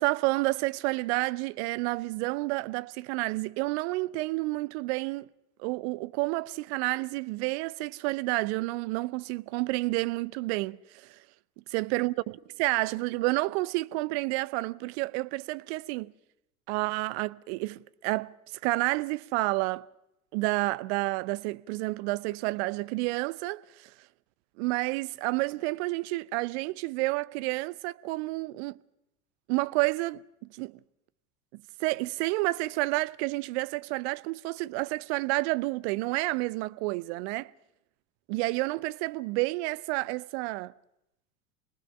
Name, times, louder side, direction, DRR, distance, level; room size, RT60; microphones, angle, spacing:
voice 1, 0.0-5.3 5.6-11.2 11.7-12.1 12.6-16.1 16.7-18.3 18.6-19.8 20.3-23.9 24.6-28.8 29.5-30.2 30.5-30.8 31.8-37.5 38.3-40.7, right 21 dB, 50° right, 0.8 m, -30 dB
28.0 x 19.5 x 5.3 m
figure-of-eight pair, 80°, 43 cm